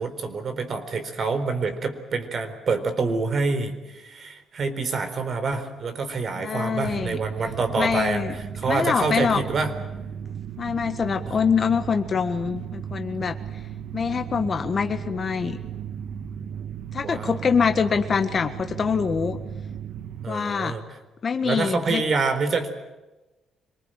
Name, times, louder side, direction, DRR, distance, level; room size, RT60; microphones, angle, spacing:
voice 1, 0.0-9.7 17.0-17.3 20.2-21.0 21.4-22.8, right 4 dB, 50° right, 8 dB, 4.2 m, -27 dB
voice 2, 6.4-7.2 7.8-8.3 8.7-9.4 10.6-13.4 13.9-15.6 16.9-19.4 20.3-20.7 21.2-22.0, left 6 dB, 45° left, 7 dB, 1.7 m, -24 dB
sound 1, 6.8-20.3, right 8 dB, 70° right, 1.6 m, -35 dB
26.0 x 20.5 x 9.1 m, 1.1 s
cardioid pair, 90°, 0 cm